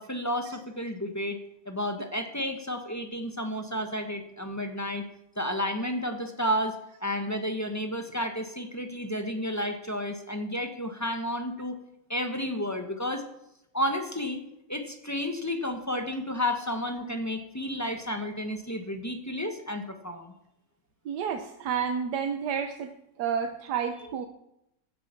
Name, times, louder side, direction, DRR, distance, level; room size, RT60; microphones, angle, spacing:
voice 1, 0.0-1.4 1.6-5.1 5.4-11.8 12.1-13.2 13.7-14.4 14.7-20.3, equal, 10° left, 5 dB, 1.1 m, -31 dB
voice 2, 21.0-24.3, right 7 dB, 90° right, 7 dB, 1.4 m, -30 dB
15.5 x 8.9 x 5.9 m, 0.82 s
omnidirectional pair, 1.7 m